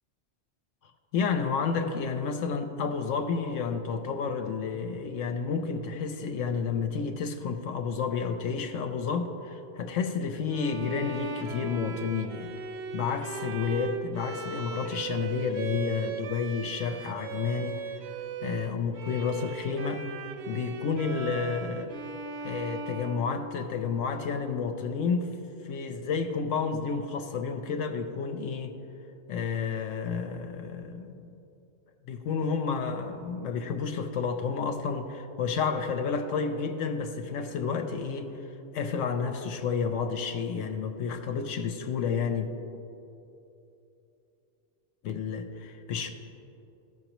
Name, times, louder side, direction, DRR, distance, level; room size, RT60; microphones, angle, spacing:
voice 1, 1.1-12.5 12.9-17.8 18.4-21.9 22.4-25.3 25.6-28.7 29.3-31.3 32.1-38.5 38.7-42.5 45.0-46.1, left 5 dB, 85° left, 6 dB, 0.9 m, -30 dB
Bowed string instrument, 10.5-24.0, right 5 dB, 65° right, 0.8 m, -38 dB
14.5 x 6.0 x 3.0 m, 2.8 s
omnidirectional pair, 1.3 m